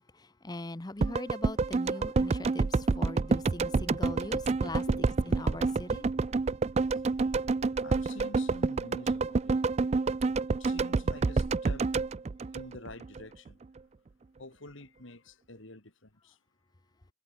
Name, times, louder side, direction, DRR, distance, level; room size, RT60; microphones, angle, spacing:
voice 1, 0.0-4.9 5.2-6.1, left 2 dB, 20° left, 0.7 m, -41 dB
sound 1, 1.0-13.2 13.5-13.6, right 4 dB, 30° right, 0.3 m, -28 dB
voice 2, 7.8-9.6 10.5-11.9 12.5-13.6 14.4-16.4, left 2 dB, 70° left, 3.4 m, -48 dB
head